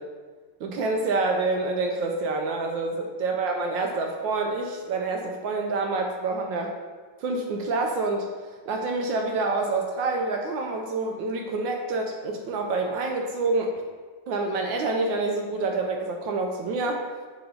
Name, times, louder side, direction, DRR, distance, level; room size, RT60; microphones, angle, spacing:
voice 1, 0.6-6.7 7.2-8.3 8.7-13.8 14.3-17.0, right 3 dB, 75° right, 2 dB, 1.2 m, -27 dB
6.7 x 3.0 x 5.4 m, 1.5 s
omnidirectional pair, 2.3 m